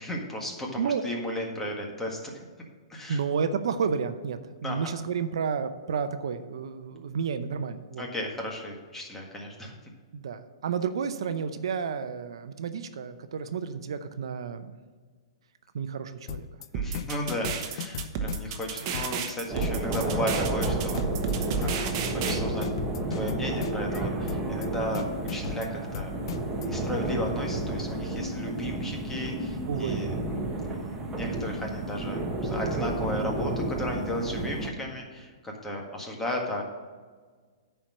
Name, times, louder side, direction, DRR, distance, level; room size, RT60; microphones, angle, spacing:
voice 1, 0.0-2.4 2.9-3.2 4.6-4.9 8.0-9.7 16.7-22.7 23.2-26.1 26.5-30.1 30.6-36.6, left 1 dB, 10° left, 0 dB, 1.7 m, -35 dB
voice 2, 3.1-8.0 10.1-14.8 15.7-16.5 18.8-18.9 29.7-30.0, right 6 dB, 75° right, 10 dB, 0.6 m, -31 dB
sound 1, 16.3-16.7 16.9-18.7 18.9-19.3 19.6-21.3 21.6-22.0 22.3-24.0 24.3-24.7 24.9-26.7, left 9 dB, 60° left, 0.5 m, -37 dB
sound 2, 16.7-22.4, right 6 dB, 40° right, 1.0 m, -32 dB
sound 3, 19.5-34.7, right 2 dB, 15° right, 1.2 m, -31 dB
10.0 x 4.6 x 6.3 m, 1.5 s
hypercardioid pair, 130°, 3 cm